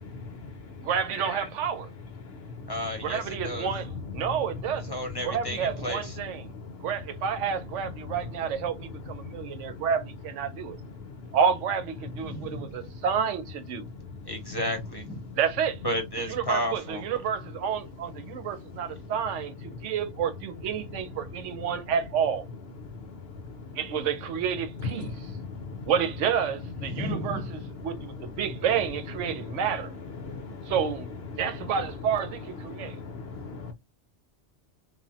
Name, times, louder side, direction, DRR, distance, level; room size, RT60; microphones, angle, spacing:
voice 1, 0.1-0.7 1.2-1.4 2.2-3.2 4.1-4.3 5.3-5.4 6.4-6.9 7.8-7.9 9.2-9.9 11.0-11.4 12.4-13.0 13.8-14.3 15.3-15.4 18.3-18.6 19.8-19.9 22.8-23.8 24.8-25.9 26.9-27.1 27.8-28.3 29.3-29.6 30.2-30.7 31.3-31.7 32.6-33.7, left 4 dB, 65° left, 0.9 m, -40 dB
voice 2, 0.8-1.9 3.0-5.0 5.2-6.5 6.8-10.8 11.3-13.9 15.4-15.8 16.2-22.5 23.8-25.1 25.9-29.9 30.7-31.1 31.3-33.0, right 7 dB, 90° right, 1.0 m, -29 dB
voice 3, 2.7-3.7 4.9-6.2 12.2-12.7 14.2-15.2 15.8-17.0 26.8-27.5, equal, 25° left, 0.7 m, -32 dB
3.2 x 2.0 x 2.6 m
omnidirectional pair, 1.2 m